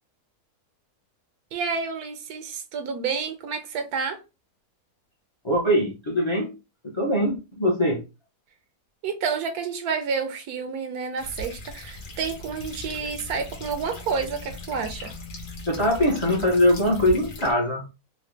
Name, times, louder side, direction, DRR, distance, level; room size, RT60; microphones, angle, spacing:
voice 1, 1.5-4.2 9.0-15.1, right 5 dB, 70° right, 1.1 m, -29 dB
voice 2, 5.4-6.6 6.9-8.0 15.7-17.9, left 1 dB, 25° left, 0.6 m, -22 dB
sound 1, 11.2-17.5, left 1 dB, 75° left, 1.6 m, -39 dB
3.9 x 2.2 x 3.2 m
omnidirectional pair, 1.7 m